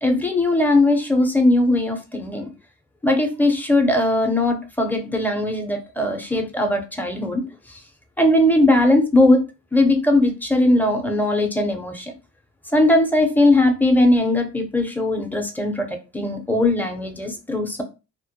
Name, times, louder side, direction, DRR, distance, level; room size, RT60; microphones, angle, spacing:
voice 1, 0.0-2.5 3.0-7.4 8.2-9.4 9.7-12.1 12.7-15.9 16.1-17.8, left 1 dB, 5° left, 5 dB, 0.5 m, -19 dB
2.1 x 2.1 x 2.8 m, 0.29 s
cardioid pair, 90°, 30 cm